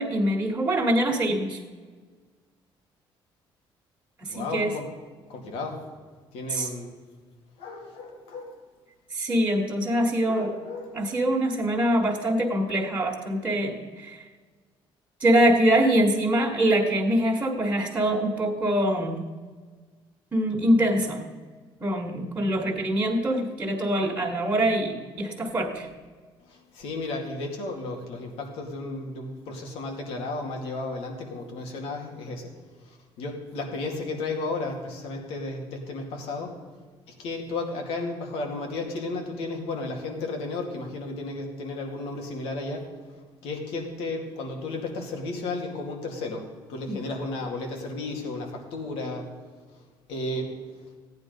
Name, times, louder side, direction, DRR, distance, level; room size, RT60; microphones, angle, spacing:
voice 1, 0.0-1.6 4.2-4.7 6.5-6.7 9.1-10.5 10.9-14.2 15.2-19.2 20.3-21.2 21.8-25.9 46.9-47.0, right 1 dB, 20° right, -3 dB, 1.8 m, -24 dB
voice 2, 4.3-4.9 5.3-5.8 6.3-6.9 7.6-8.6 10.3-10.9 26.5-32.5 32.9-36.5 37.2-42.9 43.4-49.3 50.1-50.5, left 2 dB, 90° left, 2 dB, 2.4 m, -33 dB
15.0 x 9.4 x 5.3 m, 1.5 s
cardioid pair, 110°, 10 cm